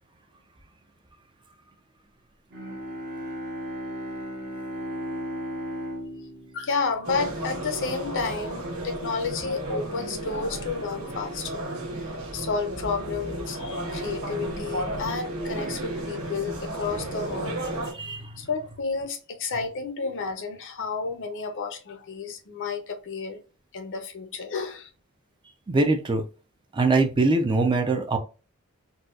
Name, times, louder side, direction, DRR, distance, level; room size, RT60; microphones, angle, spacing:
Bowed string instrument, 2.5-7.8, equal, 50° right, 1.1 m, -36 dB
voice 1, 6.5-11.6 12.3-17.6 18.4-23.4 23.7-24.9, left 4 dB, 60° left, 0.6 m, -31 dB
sound 1, 7.0-17.9, right 1 dB, 70° right, 1.3 m, -33 dB
voice 2, 18.0-18.3 25.7-26.2 26.7-28.2, right 3 dB, 20° right, 0.4 m, -22 dB
4.0 x 2.2 x 2.3 m
head